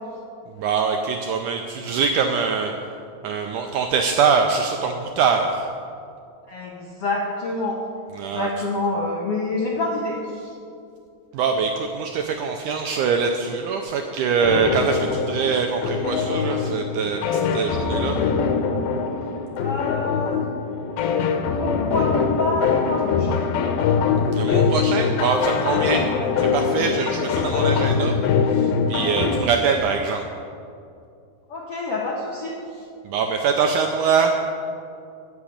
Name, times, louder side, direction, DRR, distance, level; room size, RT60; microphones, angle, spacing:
voice 1, 0.6-2.7 3.2-5.7 8.2-8.5 11.3-18.2 24.3-26.1 26.4-28.1 28.5-30.2 33.1-34.4, right 6 dB, 80° right, 4 dB, 1.8 m, -23 dB
voice 2, 6.5-7.8 8.3-10.2 19.6-20.4 21.5-23.4 31.5-32.6, left 2 dB, 70° left, -3 dB, 1.4 m, -27 dB
sound 1, 14.4-29.4, left 5 dB, 85° left, 2.6 m, -23 dB
13.0 x 6.0 x 8.4 m, 2.5 s
omnidirectional pair, 4.2 m